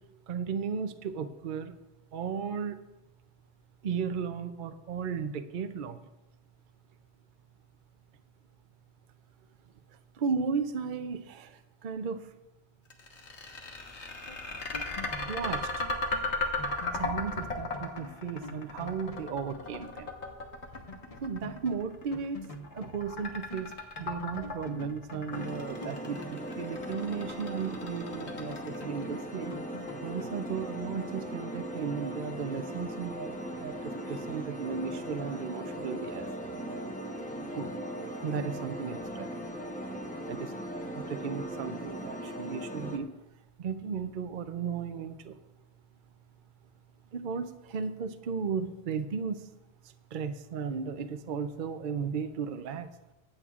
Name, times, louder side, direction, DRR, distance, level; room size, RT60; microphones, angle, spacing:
voice 1, 0.3-1.7 2.1-2.8 3.8-6.0 10.1-12.3 15.3-15.9 16.9-20.1 21.2-22.5 22.7-23.7 24.0-29.5 30.0-36.6 37.5-37.8 38.2-39.4 40.3-40.5 40.9-43.1 43.6-45.4 47.1-49.5 49.8-52.9, right 6 dB, 55° right, 9 dB, 0.7 m, -35 dB
sound 1, 12.9-29.0, left 2 dB, 80° left, 1.7 m, -36 dB
sound 2, 14.2-20.0 20.3-20.4 20.7-23.7 24.0-27.7 28.1-30.9, left 2 dB, 35° left, 1.2 m, -46 dB
sound 3, 25.3-43.0, equal, 10° left, 0.9 m, -39 dB
24.0 x 8.7 x 2.4 m, 1.0 s
omnidirectional pair, 1.1 m